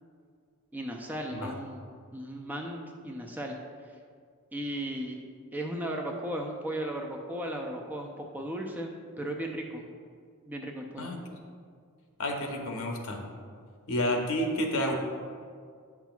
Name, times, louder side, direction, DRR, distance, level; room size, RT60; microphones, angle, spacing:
voice 1, 0.7-3.6 4.5-5.2 5.5-9.9 10.5-11.1, right 1 dB, 10° right, 0 dB, 0.4 m, -36 dB
voice 2, 12.2-13.2 13.9-14.9, left 1 dB, 65° left, 2 dB, 0.9 m, -30 dB
9.2 x 5.9 x 2.3 m, 2.1 s
head